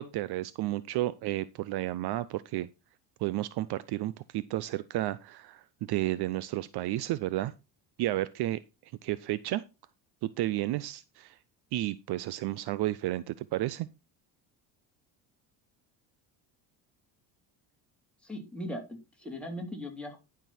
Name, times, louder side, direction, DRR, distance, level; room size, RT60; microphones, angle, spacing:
voice 1, 0.0-2.7 3.2-7.5 8.0-8.6 9.0-9.6 10.2-11.3 11.7-13.9, right 15 dB, 60° right, 17 dB, 0.6 m, -32 dB
voice 2, 18.2-20.2, left 1 dB, ahead, 0 dB, 3.4 m, -39 dB
12.0 x 6.2 x 4.3 m, 0.27 s
cardioid pair, 115°, 45 cm